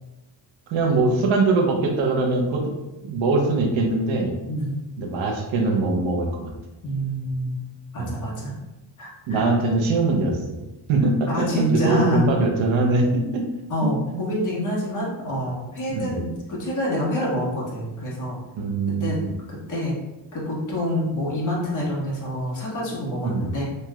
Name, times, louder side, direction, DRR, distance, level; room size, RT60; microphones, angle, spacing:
voice 1, 0.7-2.7 3.1-4.3 5.0-6.5 8.0-8.1 9.3-10.6 10.9-13.4 13.8-14.2 15.9-16.2 18.6-19.3 23.2-23.6, right 3 dB, 75° right, 2 dB, 0.7 m, -22 dB
voice 2, 4.5-4.8 6.8-7.6 7.9-8.5 9.0-9.4 11.3-12.3 13.7-18.4 19.0-19.2 19.7-20.0 20.3-23.6, equal, 40° left, -5 dB, 1.2 m, -26 dB
3.1 x 2.8 x 2.3 m, 1.0 s
cardioid pair, 115°, 47 cm